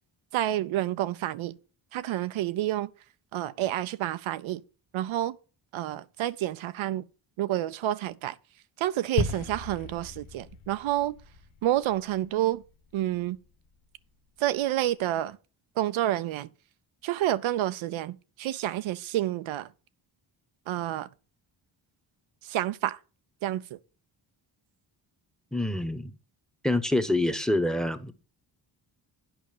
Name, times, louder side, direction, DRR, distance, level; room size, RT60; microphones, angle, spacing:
voice 1, 0.3-1.6 1.9-2.9 3.3-4.6 4.9-5.4 5.7-7.0 7.4-8.4 8.8-11.1 11.6-12.6 12.9-13.4 14.4-15.4 15.8-16.5 17.0-19.7 20.7-21.1 22.4-23.0 23.4-23.8, right 13 dB, 80° right, 0.6 m, -29 dB
sound 1, 9.2-13.5, left 5 dB, 85° left, 1.0 m, -36 dB
voice 2, 25.5-26.1 26.6-28.1, left 1 dB, ahead, 1.0 m, -26 dB
8.9 x 5.0 x 6.6 m
cardioid pair, 65°, 47 cm